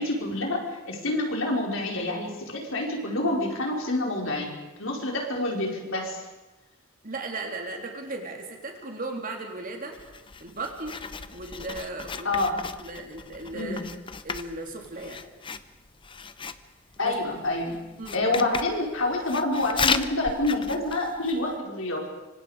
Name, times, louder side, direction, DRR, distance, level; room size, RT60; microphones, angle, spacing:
voice 1, 0.0-4.5 4.8-6.2 12.2-12.6 13.5-13.8 17.0-17.8 18.1-22.0, left 2 dB, 65° left, 0 dB, 4.9 m, -27 dB
voice 2, 7.0-10.0 10.4-11.0 11.3-12.4 12.8-13.8 14.2-15.2 17.0-17.4 18.0-18.3, right 2 dB, 45° right, 2 dB, 3.6 m, -36 dB
Writing, 9.9-21.5, left 5 dB, 25° left, 0.8 m, -35 dB
26.0 x 25.5 x 5.1 m, 1.1 s
head